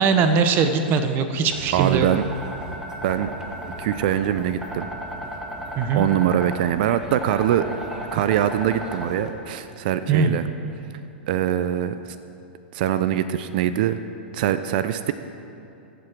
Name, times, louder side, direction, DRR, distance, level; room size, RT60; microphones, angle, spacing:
voice 1, 0.0-2.1 5.8-6.0 10.1-10.4, right 5 dB, 35° right, 8 dB, 1.1 m, -20 dB
sound 1, 1.5-9.3, equal, 10° right, 1.8 m, -35 dB
voice 2, 1.7-2.2 3.0-3.3 3.8-4.9 5.9-7.7 8.1-10.5 11.3-11.9 12.7-14.0 14.3-15.1, right 11 dB, 55° right, 12 dB, 0.6 m, -23 dB
23.0 x 7.8 x 4.7 m, 2.8 s
hypercardioid pair, 105°, 6 cm